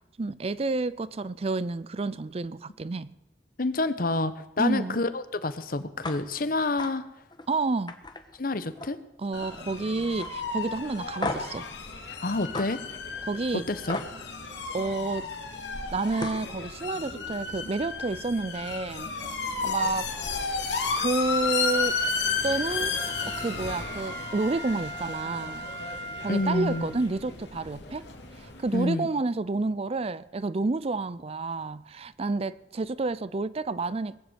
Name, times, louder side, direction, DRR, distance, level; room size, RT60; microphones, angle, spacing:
voice 1, 0.2-3.1 4.6-5.0 7.5-8.0 9.2-11.7 13.2-13.7 14.7-15.3 15.9-19.1 19.6-20.1 21.0-22.0 22.4-25.7 26.2-28.1 28.4-34.2, right 3 dB, 35° right, 0.5 m, -30 dB
voice 2, 3.6-7.0 8.4-9.0 12.2-12.8 13.5-14.0 26.3-26.9 28.7-29.1, left 2 dB, 55° left, 1.0 m, -28 dB
sound 1, 6.0-6.2 6.6-6.9 7.3-7.5 7.9-9.0 9.3-9.7 10.2-10.3 11.2-11.6 12.5-12.7 13.9-14.1 15.8-15.9 16.2-16.5, left 2 dB, 25° left, 1.3 m, -34 dB
sound 2, 9.3-28.8, left 4 dB, 85° left, 2.9 m, -33 dB
Wind instrument woodwind instrument, 22.9-27.2 27.7-27.8, right 1 dB, 75° right, 3.2 m, -39 dB
20.0 x 8.2 x 8.1 m
head